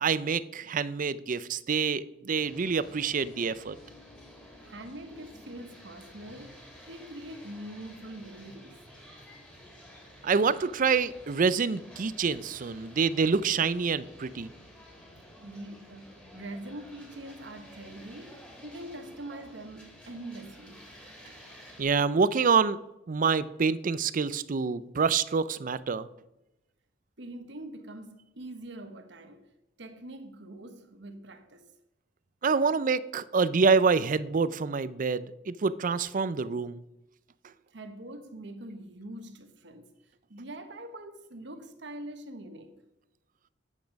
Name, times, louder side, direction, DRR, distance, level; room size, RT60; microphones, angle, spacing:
voice 1, 0.0-3.8 10.2-14.5 21.8-22.8 23.1-26.1 32.4-36.8, right 5 dB, 45° right, 0.5 m, -26 dB
sound 1, 2.3-21.8, equal, 5° left, 2.7 m, -51 dB
voice 2, 4.6-8.8 15.4-20.9 27.2-29.5 29.8-31.7 37.7-39.9 40.3-42.8, right 1 dB, 70° right, 1.2 m, -44 dB
10.5 x 8.2 x 5.2 m
head